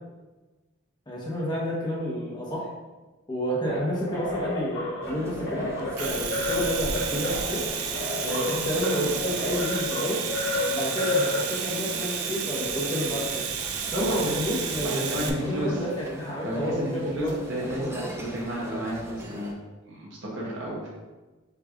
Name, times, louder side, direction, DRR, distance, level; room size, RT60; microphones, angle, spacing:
voice 1, 1.1-2.7 3.3-7.6 8.2-10.2 10.7-13.5 13.9-17.3 17.6-18.0, equal, 20° left, -4 dB, 1.0 m, -30 dB
sound 1, 3.7-11.9, left 2 dB, 55° left, 1.3 m, -31 dB
sound 2, 5.0-19.5, equal, 10° right, 0.4 m, -40 dB
Domestic sounds home sounds, 5.8-15.3, right 7 dB, 85° right, 0.5 m, -32 dB
voice 2, 13.9-15.8 16.4-19.6 19.9-20.9, equal, 60° right, -5 dB, 1.1 m, -32 dB
6.9 x 3.2 x 2.4 m, 1.2 s
head